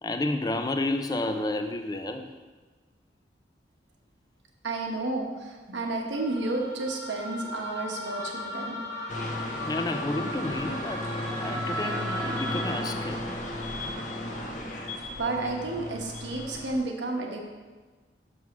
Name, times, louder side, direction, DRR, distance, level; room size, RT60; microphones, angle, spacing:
voice 1, 0.0-2.3 9.7-13.2, left 2 dB, 20° left, 6 dB, 0.4 m, -31 dB
voice 2, 4.6-8.8 15.2-17.4, right 2 dB, 90° right, 1 dB, 1.2 m, -31 dB
sound 1, 6.1-13.4, equal, 20° right, 1.1 m, -36 dB
sound 2, 9.1-16.8, left 1 dB, 45° left, 1.0 m, -35 dB
6.3 x 5.6 x 6.0 m, 1.3 s
head